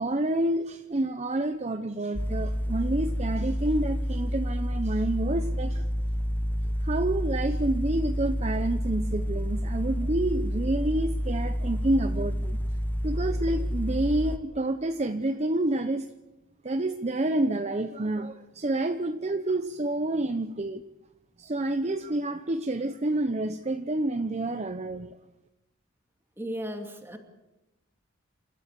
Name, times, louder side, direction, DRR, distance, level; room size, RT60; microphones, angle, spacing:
voice 1, 0.0-5.9 6.8-12.6 13.0-16.1 16.6-20.8 21.4-25.2, right 1 dB, 35° right, 8 dB, 0.8 m, -28 dB
sound 1, 2.2-14.4, equal, 10° left, 0.9 m, -29 dB
voice 2, 26.4-27.2, equal, 10° right, 4 dB, 2.7 m, -35 dB
28.5 x 13.5 x 8.2 m, 1.0 s
head